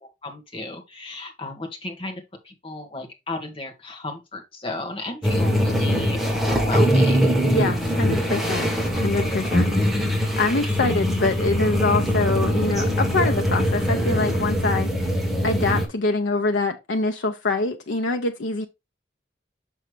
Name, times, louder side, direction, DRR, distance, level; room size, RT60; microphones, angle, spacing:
voice 1, 0.0-7.4, left 2 dB, 30° left, 1.5 m, -34 dB
sound 1, 5.2-15.9, equal, ahead, 1.5 m, -22 dB
voice 2, 7.5-9.7 10.3-14.9 15.4-18.7, left 3 dB, 90° left, 0.7 m, -24 dB
6.2 x 5.6 x 3.2 m
head